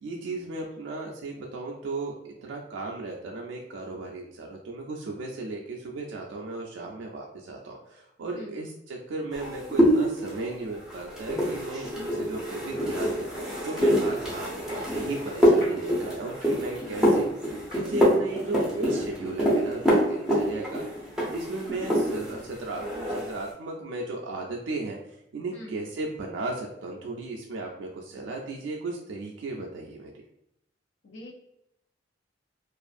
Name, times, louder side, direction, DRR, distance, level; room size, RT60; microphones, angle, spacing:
voice 1, 0.0-14.4 14.7-17.3 17.7-20.8 21.3-25.0 25.3-30.1, right 2 dB, 85° right, -1 dB, 0.4 m, -36 dB
voice 2, 8.3-8.6 25.5-25.8 31.0-31.3, left 1 dB, 75° left, 0 dB, 0.5 m, -43 dB
sound 1, 9.3-22.4 22.7-23.4, equal, 5° right, 0.6 m, -25 dB
sound 2, 12.7-21.9, left 1 dB, 55° left, 1.5 m, -46 dB
2.5 x 2.4 x 2.4 m, 0.82 s
head